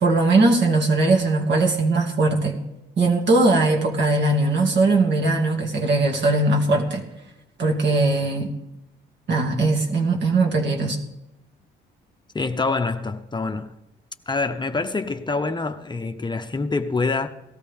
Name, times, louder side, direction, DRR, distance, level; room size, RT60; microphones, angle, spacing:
voice 1, 0.0-2.6 3.0-7.0 7.6-8.5 9.3-11.0, right 2 dB, 65° right, 2.3 m, -20 dB
voice 2, 12.3-13.7 14.3-17.3, left 3 dB, 20° left, 0.7 m, -26 dB
18.0 x 13.5 x 3.6 m
cardioid pair, 90°, 20 cm